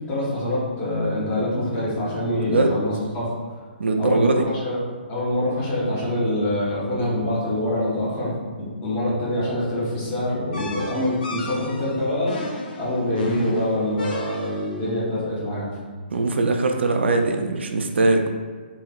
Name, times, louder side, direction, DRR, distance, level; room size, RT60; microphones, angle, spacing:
voice 1, 0.1-3.3 4.0-4.8 5.1-12.4 12.8-15.7, left 1 dB, 30° left, -7 dB, 1.1 m, -25 dB
voice 2, 3.8-4.5 16.1-18.3, right 2 dB, 85° right, 4 dB, 0.4 m, -21 dB
sound 1, 10.5-14.8, left 1 dB, 55° left, 0.5 m, -34 dB
3.0 x 2.7 x 2.3 m, 1.5 s
hypercardioid pair, 150°, 6 cm